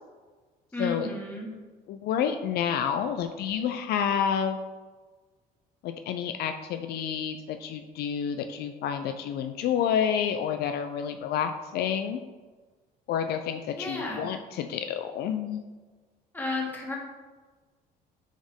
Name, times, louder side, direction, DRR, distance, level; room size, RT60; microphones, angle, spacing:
voice 1, 0.7-1.5 13.8-14.3 16.3-17.0, left 2 dB, 10° left, -3 dB, 1.6 m, -33 dB
voice 2, 1.9-4.6 5.8-12.2 13.1-15.6, left 8 dB, 70° left, 8 dB, 0.4 m, -29 dB
6.0 x 4.3 x 3.6 m, 1.4 s
cardioid pair, 110°, 17 cm